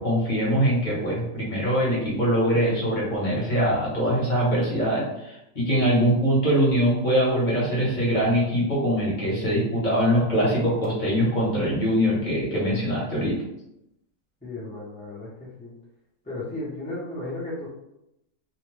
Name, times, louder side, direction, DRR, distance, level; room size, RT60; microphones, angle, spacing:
voice 1, 0.0-13.4, equal, 40° left, -6 dB, 0.9 m, -23 dB
voice 2, 14.4-15.7 16.2-17.7, left 2 dB, 10° left, -7 dB, 0.5 m, -34 dB
2.5 x 2.1 x 3.1 m, 0.85 s
omnidirectional pair, 1.5 m